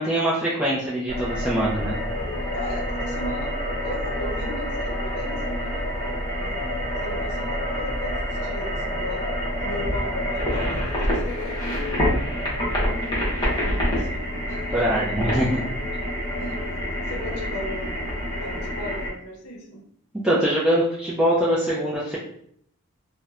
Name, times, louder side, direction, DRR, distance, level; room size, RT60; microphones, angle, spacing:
voice 1, 0.0-2.0 6.6-6.7 14.7-15.6 20.2-22.2, equal, 5° right, -8 dB, 0.3 m, -23 dB
sound 1, 1.1-19.1, equal, 20° left, 0.7 m, -27 dB
voice 2, 2.5-3.5 3.8-6.6 7.0-12.1 12.7-15.1 16.3-19.8, left 1 dB, 80° left, 1 dB, 0.6 m, -37 dB
2.9 x 2.0 x 2.4 m, 0.68 s
head